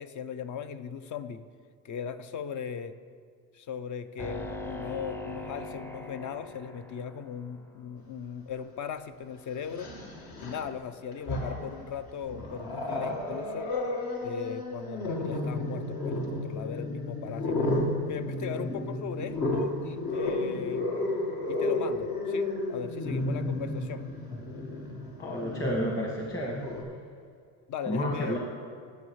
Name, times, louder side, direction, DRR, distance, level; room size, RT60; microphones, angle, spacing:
voice 1, 0.0-1.5 1.8-3.0 3.5-9.9 10.4-13.7 14.2-17.7 18.1-20.9 21.5-24.1 27.7-28.4, left 7 dB, 50° left, 12 dB, 0.6 m, -38 dB
sound 1, 4.2-7.6, left 1 dB, 5° left, 0.5 m, -40 dB
Growling, 8.6-8.7 9.6-10.7 11.1-11.8 12.2-26.8, left 2 dB, 65° left, 1.7 m, -32 dB
voice 2, 25.2-26.6 27.9-28.4, equal, 30° left, -2 dB, 1.6 m, -30 dB
16.5 x 6.4 x 3.2 m, 2.2 s
supercardioid pair, 80°, 39 cm